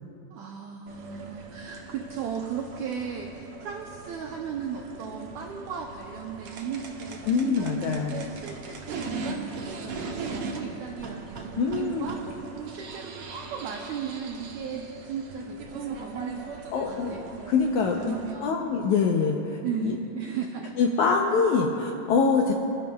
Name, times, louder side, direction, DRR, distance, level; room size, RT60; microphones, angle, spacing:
voice 1, 0.3-12.2 12.6-17.3 18.0-18.5 19.6-20.7, right 7 dB, 90° right, 1 dB, 1.6 m, -36 dB
sound 1, 0.9-18.3, right 4 dB, 70° right, 1.4 m, -40 dB
voice 2, 7.3-8.3 11.6-12.1 16.7-17.1 17.5-18.2 18.4-20.0 20.8-22.5, left 5 dB, 75° left, 1 dB, 1.8 m, -24 dB
25.5 x 13.0 x 2.3 m, 2.8 s
omnidirectional pair, 4.2 m